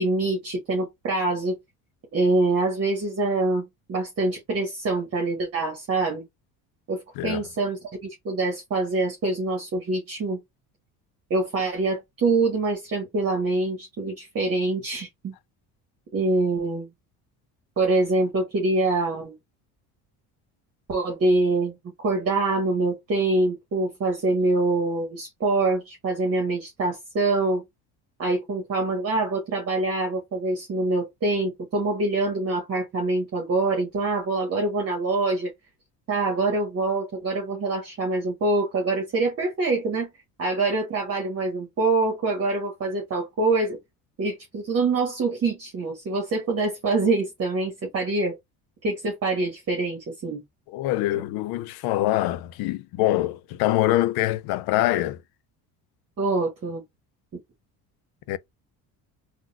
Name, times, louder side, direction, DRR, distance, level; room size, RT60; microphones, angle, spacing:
voice 1, 0.0-1.6 2.1-6.2 6.9-7.8 8.2-10.4 11.3-15.3 16.1-16.9 17.8-19.4 20.9-27.6 28.2-35.5 36.1-40.1 40.4-43.8 44.2-48.4 48.8-50.4 51.1-51.2 56.2-56.8, right 2 dB, 40° right, 1.1 m, -25 dB
voice 2, 50.7-55.2 58.3-58.4, left 15 dB, 70° left, 0.5 m, -24 dB
3.8 x 2.3 x 2.3 m
supercardioid pair, 95°, 39 cm